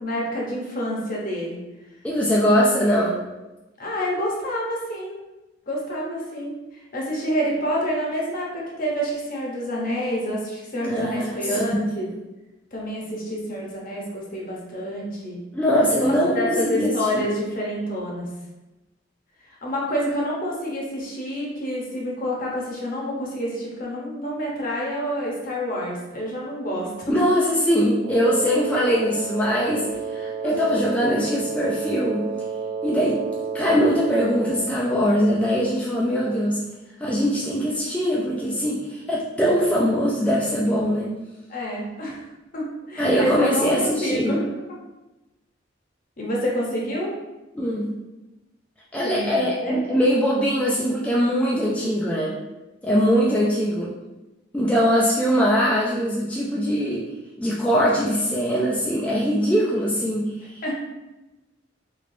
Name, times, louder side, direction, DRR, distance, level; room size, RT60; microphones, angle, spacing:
voice 1, 0.0-1.6 3.8-5.2 5.7-12.1 12.7-15.4 15.9-18.3 19.4-27.1 28.7-29.0 30.4-30.5 41.5-42.2 42.5-44.4 44.7-44.8 46.2-47.1 49.0-49.8 53.1-53.4 60.6-60.7, equal, 45° left, -3 dB, 0.8 m, -28 dB
voice 2, 2.0-3.2 10.8-11.8 15.5-17.3 27.1-29.9 30.1-32.3 32.8-33.2 33.5-36.6 37.0-41.1 43.0-44.4 47.5-47.9 48.9-52.4 52.8-53.9 54.5-57.1 57.4-60.5, equal, 5° left, -5 dB, 0.3 m, -22 dB
Wind instrument woodwind instrument, 28.0-34.8, right 5 dB, 60° right, 0.6 m, -31 dB
3.2 x 3.0 x 2.6 m, 1.0 s
head